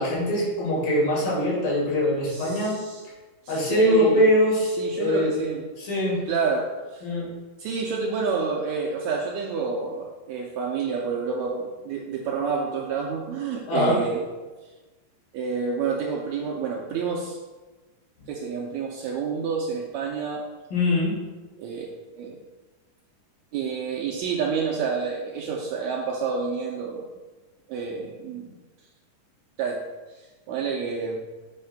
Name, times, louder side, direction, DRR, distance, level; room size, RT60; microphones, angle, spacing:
voice 1, 0.0-2.8 3.5-5.4 5.8-6.2 7.0-7.3 13.7-14.0 20.7-21.1, left 1 dB, 85° left, -6 dB, 4.2 m, -22 dB
voice 2, 2.3-3.0 3.5-4.2 4.8-5.6 6.3-7.0 7.6-14.2 15.3-17.4 18.3-20.4 21.6-21.9 22.2-22.4 23.5-27.1 27.7-28.5 29.6-29.8 30.5-31.2, right 5 dB, 80° right, -1 dB, 1.7 m, -29 dB
7.6 x 3.2 x 5.7 m, 1.2 s
omnidirectional pair, 3.8 m